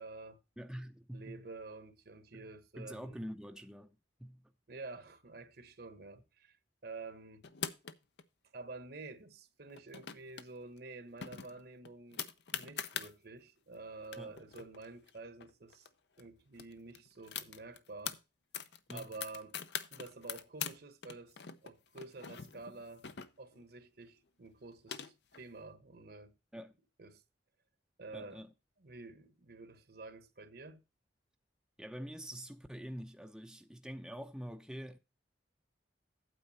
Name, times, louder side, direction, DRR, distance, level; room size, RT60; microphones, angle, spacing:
voice 1, 0.0-0.4 1.1-3.2 4.7-6.6 6.8-7.5 8.5-12.3 12.5-15.9 16.2-18.2 18.9-19.6 19.9-21.4 21.6-23.1 23.4-26.3 27.0-27.2 28.0-28.4 28.8-30.8, right 3 dB, 60° right, 1.2 m, -49 dB
voice 2, 0.6-1.4 2.3-2.5 2.8-4.5 14.2-14.4 18.9-19.1 26.5-26.7 28.1-28.5 31.8-35.0, equal, 5° right, 0.6 m, -46 dB
sound 1, 7.4-8.2 9.7-10.5 10.8-10.9 11.2-13.1 13.7-13.8 14.0-15.9 16.2-16.3 16.5-18.2 18.5-20.8 21.0-23.6 24.5-25.4, left 8 dB, 65° left, 0.8 m, -43 dB
9.1 x 7.8 x 4.2 m
head